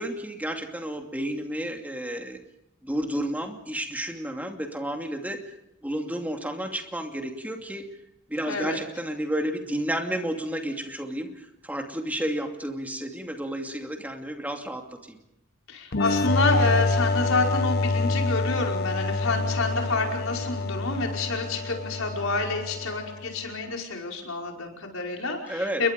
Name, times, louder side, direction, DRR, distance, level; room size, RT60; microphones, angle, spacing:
voice 1, 0.0-2.4 2.8-5.4 5.8-7.8 8.3-15.2 25.5-25.8, right 1 dB, 10° right, 3 dB, 2.6 m, -31 dB
voice 2, 8.5-8.8 15.7-25.9, left 3 dB, 80° left, 1 dB, 5.2 m, -28 dB
sound 1, 15.9-23.4, left 3 dB, 50° left, 1.0 m, -27 dB
29.5 x 22.5 x 5.3 m, 0.82 s
head